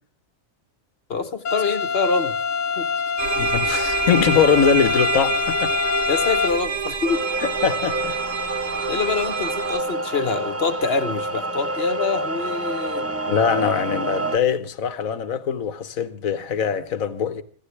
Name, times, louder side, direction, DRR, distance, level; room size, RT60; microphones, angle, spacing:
voice 1, 1.1-2.3 2.8-2.9 6.1-7.2 8.9-13.1, left 4 dB, 50° left, 1.4 m, -25 dB
sound 1, 1.5-6.5, left 6 dB, 70° left, 1.3 m, -25 dB
sound 2, 3.2-9.8, right 6 dB, 70° right, 1.7 m, -27 dB
voice 2, 3.4-5.7 7.4-8.2 13.3-17.4, left 7 dB, 85° left, 1.5 m, -22 dB
sound 3, 7.0-14.4, right 2 dB, 15° right, 0.5 m, -28 dB
24.5 x 16.0 x 3.4 m
omnidirectional pair, 1.4 m